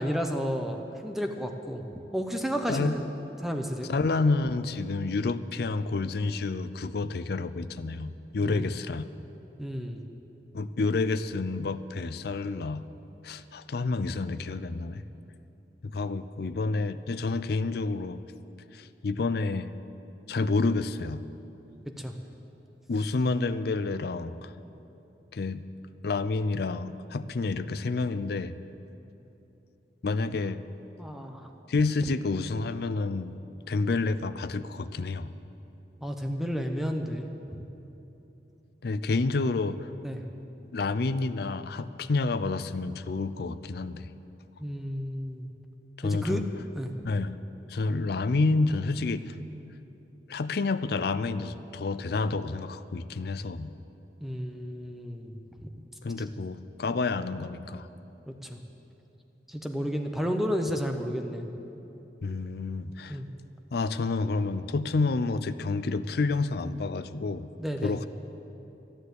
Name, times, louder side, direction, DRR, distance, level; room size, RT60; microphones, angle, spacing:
voice 1, 0.0-1.8 2.1-3.1 3.4-3.9 8.4-8.7 9.6-10.0 22.0-22.1 31.0-31.5 36.0-37.3 40.0-40.2 44.6-45.5 46.0-46.4 46.8-46.9 54.2-55.7 58.3-58.6 59.5-61.5 63.1-63.3 67.6-67.9, equal, ahead, 4 dB, 0.7 m, -32 dB
voice 2, 3.9-9.1 10.5-12.8 13.2-15.0 15.8-18.2 18.7-19.7 20.3-21.2 22.9-24.5 25.3-25.6 26.0-28.5 30.0-30.6 31.7-33.3 33.7-35.3 38.8-39.9 40.7-44.1 46.0-46.5 47.0-47.4 47.7-49.3 50.3-53.7 56.0-57.9 62.2-63.2 63.7-67.5 67.8-68.1, left 3 dB, 60° left, 13 dB, 0.5 m, -29 dB
12.5 x 10.5 x 8.1 m, 3.0 s
head